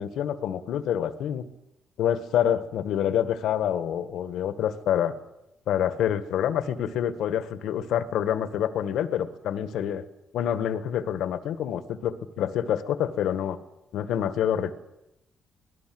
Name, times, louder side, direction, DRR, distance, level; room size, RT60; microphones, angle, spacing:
voice 1, 0.0-1.5 2.0-5.1 5.7-10.0 10.3-13.6 13.9-14.7, left 10 dB, 80° left, 12 dB, 1.6 m, -27 dB
25.5 x 18.0 x 7.8 m, 0.89 s
cardioid pair, 90°, 0 cm